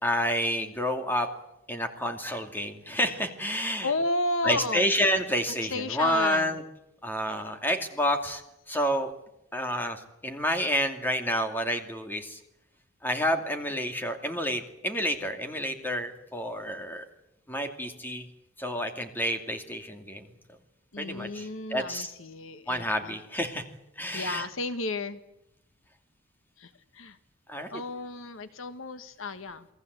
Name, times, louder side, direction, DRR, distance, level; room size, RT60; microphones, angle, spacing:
voice 1, 0.0-1.3 1.7-3.9 4.4-6.6 7.0-8.4 8.7-9.1 9.5-12.4 13.0-17.0 17.5-18.3 18.6-20.3 21.0-22.1 22.7-23.6 24.0-24.5 27.5-27.7, equal, 10° left, 5 dB, 2.5 m, -29 dB
voice 2, 3.8-4.9 5.5-6.6 20.9-23.2 24.1-25.2 26.6-27.2 27.7-29.7, left 2 dB, 70° left, 11 dB, 1.4 m, -33 dB
28.5 x 20.0 x 8.2 m, 0.84 s
head